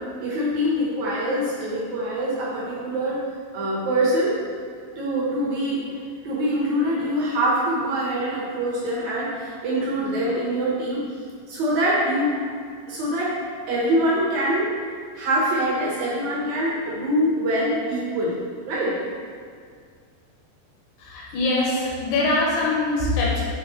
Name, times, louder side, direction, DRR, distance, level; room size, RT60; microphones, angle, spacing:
voice 1, 0.2-3.2 3.5-4.3 5.0-5.8 6.2-11.0 11.5-12.3 12.9-13.3 13.7-14.7 15.1-18.3 18.7-18.9, equal, 70° right, -6 dB, 1.8 m, -24 dB
voice 2, 21.0-23.4, left 2 dB, 85° left, -4 dB, 3.2 m, -23 dB
6.9 x 3.8 x 4.0 m, 2.1 s
omnidirectional pair, 4.7 m